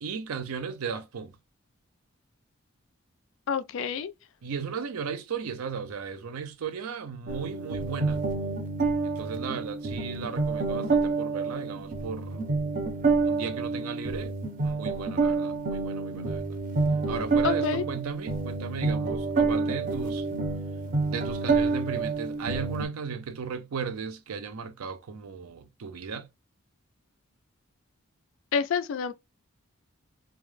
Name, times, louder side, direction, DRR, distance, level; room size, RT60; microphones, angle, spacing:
voice 1, 0.0-1.3 4.4-8.2 9.0-12.5 13.2-14.3 14.6-16.6 17.1-20.3 21.1-26.3, right 6 dB, 85° right, 0.5 m, -36 dB
voice 2, 3.5-4.1 17.4-17.8 28.5-29.1, left 7 dB, 65° left, 0.3 m, -28 dB
sound 1, 7.3-22.9, right 3 dB, 35° right, 0.5 m, -28 dB
2.3 x 2.0 x 3.1 m
head